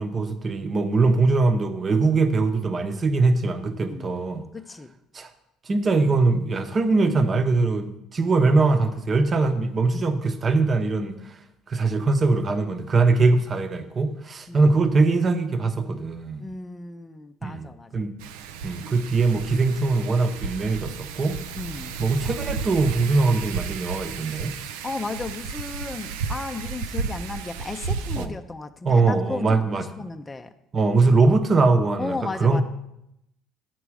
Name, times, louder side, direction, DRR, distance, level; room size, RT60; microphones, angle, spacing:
voice 1, 0.0-4.4 5.1-5.3 5.7-11.4 11.7-16.4 17.4-18.1 18.6-21.4 22.0-24.5 28.2-28.3 28.8-29.8 30.7-32.6, right 3 dB, 35° right, 8 dB, 0.9 m, -22 dB
voice 2, 3.8-4.2 4.5-4.9 14.5-14.7 16.4-17.9 21.5-22.0 24.8-30.5 32.0-32.6, left 3 dB, 20° left, 7 dB, 0.6 m, -34 dB
Wind, 18.2-28.3, right 5 dB, 85° right, 0.5 m, -33 dB
8.9 x 6.1 x 4.8 m, 0.84 s
supercardioid pair, 85°, 0 cm